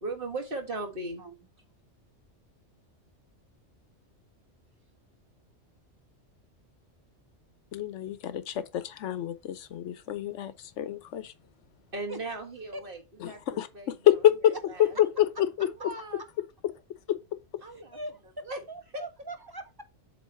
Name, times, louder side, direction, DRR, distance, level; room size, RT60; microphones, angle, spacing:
voice 1, 0.0-1.2 11.9-13.0 13.3-13.9 14.7-14.9 15.6-16.2 17.6-18.0 18.4-18.6 18.9-19.0, right 2 dB, 50° right, 1.7 m, -37 dB
voice 2, 7.7-11.3 13.2-14.5 15.2-15.7, left 11 dB, 75° left, 1.0 m, -27 dB
voice 3, 17.7-18.2 18.7-19.8, right 1 dB, 30° right, 0.5 m, -41 dB
7.8 x 3.0 x 5.5 m
omnidirectional pair, 1.2 m